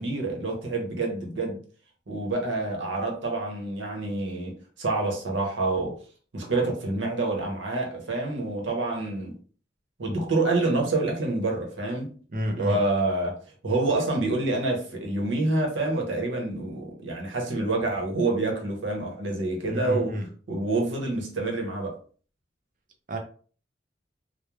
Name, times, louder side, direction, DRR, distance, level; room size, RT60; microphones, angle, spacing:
voice 1, 0.0-1.6 2.1-6.0 6.3-9.4 10.0-12.1 12.6-13.4 13.6-20.2 20.5-22.0, right 2 dB, 85° right, 0.9 m, -27 dB
voice 2, 12.3-12.8 19.7-20.3 23.1-23.2, equal, 45° right, 0.5 m, -29 dB
3.1 x 2.1 x 2.3 m
head